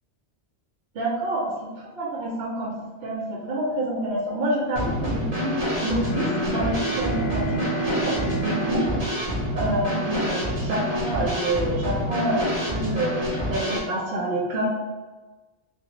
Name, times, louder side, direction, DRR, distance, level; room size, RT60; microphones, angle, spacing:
voice 1, 0.9-1.5 1.8-2.7 3.0-5.5 5.8-9.0 9.5-12.4 12.7-13.1 13.4-14.7, right 1 dB, 65° right, -2 dB, 0.8 m, -27 dB
Drum kit / Snare drum, 4.8-13.8, equal, 35° right, 1.0 m, -27 dB
Bowed string instrument, 6.0-10.3, right 3 dB, 70° left, 0.8 m, -31 dB
3.6 x 2.1 x 2.9 m, 1.3 s
omnidirectional pair, 1.2 m